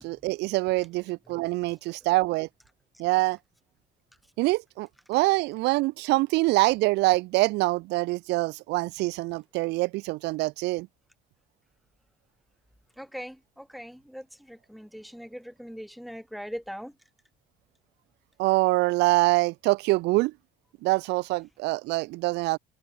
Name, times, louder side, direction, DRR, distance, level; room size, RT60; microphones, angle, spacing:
voice 1, 0.0-2.5 3.0-3.4 4.4-10.9 18.4-20.3 20.8-22.6, right 21 dB, 90° right, 0.8 m, -25 dB
voice 2, 13.0-16.9, equal, ahead, 3.0 m, -41 dB
cardioid pair, 110°, 17 cm